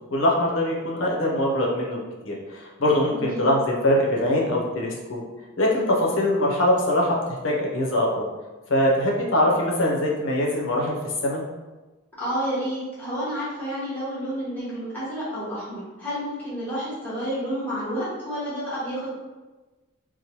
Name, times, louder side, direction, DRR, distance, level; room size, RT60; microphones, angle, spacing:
voice 1, 0.1-5.2 5.6-8.3 8.7-10.9 11.2-11.4, left 1 dB, 60° left, -2 dB, 0.6 m, -23 dB
voice 2, 3.1-3.5 12.2-19.1, equal, 10° left, -11 dB, 0.8 m, -30 dB
2.9 x 2.1 x 2.8 m, 1.2 s
head